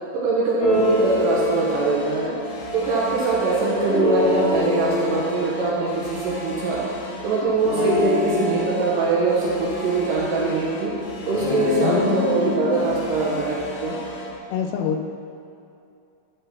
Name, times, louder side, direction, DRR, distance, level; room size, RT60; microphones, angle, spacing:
voice 1, 0.1-2.3 2.7-6.8 7.2-10.9 11.2-14.0, right 3 dB, 70° right, -5 dB, 2.3 m, -22 dB
sound 1, 0.6-14.4, left 1 dB, 70° left, 2.2 m, -37 dB
sound 2, 0.6-3.3 3.8-7.2 7.6-10.8 11.2-12.9, left 2 dB, 50° left, 2.1 m, -28 dB
voice 2, 11.7-12.7 14.5-15.0, left 7 dB, 85° left, 7 dB, 2.6 m, -26 dB
11.5 x 4.3 x 5.7 m, 2.6 s
omnidirectional pair, 4.8 m